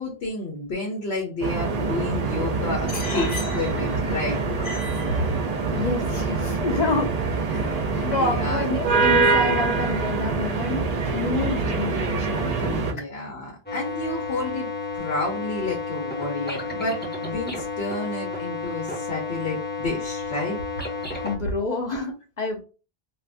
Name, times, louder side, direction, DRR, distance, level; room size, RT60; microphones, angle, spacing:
voice 1, 0.0-4.4 7.9-8.7 12.7-14.7 14.9-20.6, left 2 dB, 90° left, 1 dB, 1.1 m, -30 dB
sound 1, 1.4-12.9, right 4 dB, 45° right, 0.6 m, -25 dB
voice 2, 2.9-3.9 4.6-7.2 7.5-12.8 21.2-22.6, left 3 dB, 50° left, 2 dB, 0.6 m, -29 dB
sound 2, 13.7-21.4, left 3 dB, 10° left, 0.7 m, -31 dB
2.5 x 2.5 x 3.4 m, 0.34 s
omnidirectional pair, 1.0 m